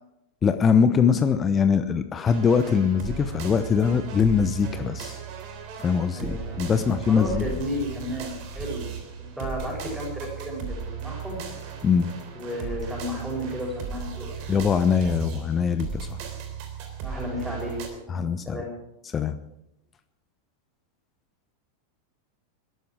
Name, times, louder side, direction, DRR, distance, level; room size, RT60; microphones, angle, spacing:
voice 1, 0.4-5.2 5.8-7.4 11.8-12.1 14.5-16.1 18.1-18.6 19.1-19.4, left 6 dB, 20° left, 10 dB, 0.9 m, -22 dB
sound 1, 2.3-17.9, right 6 dB, 45° right, 3.3 m, -36 dB
voice 2, 6.1-6.7 7.1-10.7 11.0-11.4 12.3-14.7 17.0-18.7, equal, 5° right, -1 dB, 7.0 m, -33 dB
21.5 x 13.0 x 4.8 m, 0.86 s
figure-of-eight pair, 90°, 0 cm